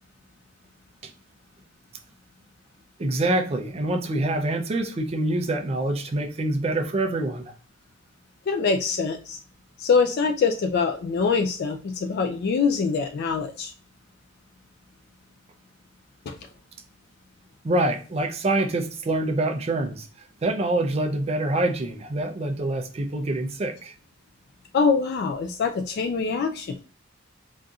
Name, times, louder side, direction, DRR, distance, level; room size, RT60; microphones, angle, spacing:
voice 1, 3.0-7.5 17.6-23.9, right 2 dB, 30° right, 6 dB, 0.4 m, -26 dB
voice 2, 8.5-9.4 9.8-13.7 16.3-16.4 24.7-26.7, left 5 dB, 55° left, 5 dB, 0.3 m, -24 dB
4.0 x 2.5 x 2.3 m, 0.36 s
head